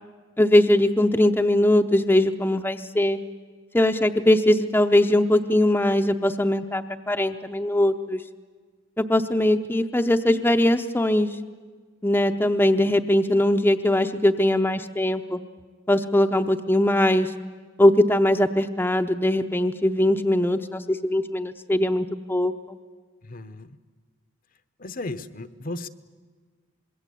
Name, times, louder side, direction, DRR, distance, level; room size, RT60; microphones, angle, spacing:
voice 1, 0.4-3.2 3.7-8.2 9.0-11.4 12.0-15.4 15.9-17.3 17.8-22.8, left 1 dB, 10° left, 5 dB, 0.7 m, -21 dB
voice 2, 23.2-23.8 24.8-25.9, left 2 dB, 45° left, 12 dB, 0.9 m, -35 dB
25.5 x 22.0 x 8.4 m, 1.5 s
head